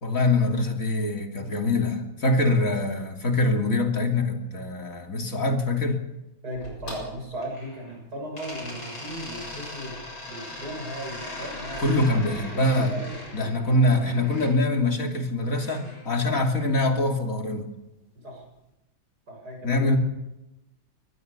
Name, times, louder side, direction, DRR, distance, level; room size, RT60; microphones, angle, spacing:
voice 1, 0.0-6.0 11.8-12.9 13.3-17.7 19.6-20.0, left 2 dB, 45° left, 3 dB, 3.3 m, -24 dB
voice 2, 6.4-10.0 10.3-13.1 18.2-18.4 19.3-19.9, right 1 dB, 55° right, 2 dB, 7.6 m, -37 dB
sound 1, 6.5-8.0 8.3-14.5 15.6-16.7, left 1 dB, 90° left, 8.0 m, -39 dB
24.5 x 20.0 x 7.0 m, 0.95 s
omnidirectional pair, 2.1 m